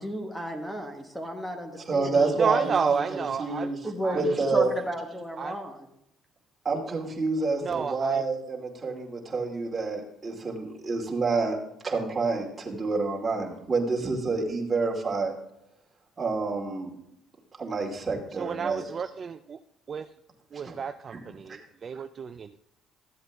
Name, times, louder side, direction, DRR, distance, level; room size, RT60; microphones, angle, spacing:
voice 1, 0.0-2.5 3.8-4.2 4.5-5.8, right 1 dB, 5° left, 4 dB, 1.3 m, -33 dB
voice 2, 1.8-3.8 4.1-4.7 6.6-11.6 11.8-15.3 16.2-16.9 17.6-18.8 20.5-20.8 21.5-21.6, right 3 dB, 25° right, -2 dB, 2.4 m, -28 dB
voice 3, 2.4-4.3 5.4-5.6 7.6-8.2 18.4-19.6 19.9-20.1 20.5-22.6, right 6 dB, 45° right, 9 dB, 0.4 m, -31 dB
13.5 x 7.9 x 3.5 m, 0.80 s
supercardioid pair, 85°, 0 cm